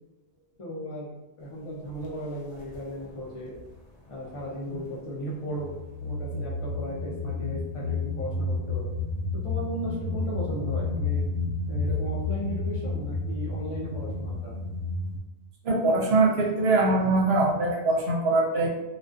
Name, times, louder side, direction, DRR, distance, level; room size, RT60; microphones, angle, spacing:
voice 1, 0.6-3.5 4.1-5.7 6.0-8.9 9.4-11.3 11.7-14.5, equal, 60° left, -6 dB, 0.3 m, -36 dB
sound 1, 1.9-2.1 2.6-3.7 4.1-5.0 5.5-15.2, left 3 dB, 90° left, 0.9 m, -31 dB
voice 2, 15.6-18.7, right 2 dB, 70° right, -1 dB, 0.8 m, -22 dB
2.4 x 2.2 x 2.3 m, 1.0 s
omnidirectional pair, 1.2 m